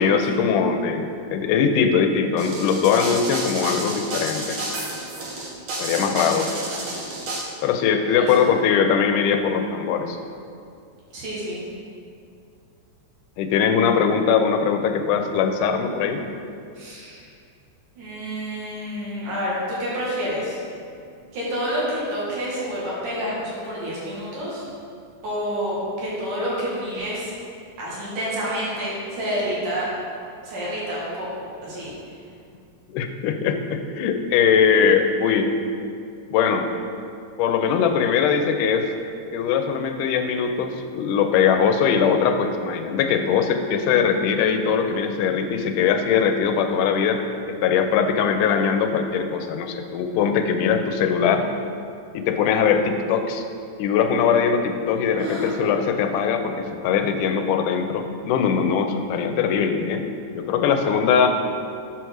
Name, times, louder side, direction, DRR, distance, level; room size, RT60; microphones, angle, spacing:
voice 1, 0.0-4.6 5.8-6.5 7.6-10.2 13.4-16.2 32.9-35.5 36.3-36.7 37.4-38.9 39.3-47.2 47.5-51.5 52.1-53.4 53.8-60.0 60.3-61.3, left 6 dB, 90° left, 6 dB, 2.2 m, -21 dB
sound 1, 2.4-7.4, right 2 dB, 55° right, 1.5 m, -30 dB
voice 2, 5.9-6.8 8.1-8.3 11.1-11.6 16.8-17.2 18.0-20.6 21.3-24.6 25.2-27.3 27.8-29.9 30.4-31.9 55.2-55.6, equal, 90° right, -7 dB, 3.6 m, -29 dB
7.5 x 4.6 x 6.3 m, 2.4 s
omnidirectional pair, 3.6 m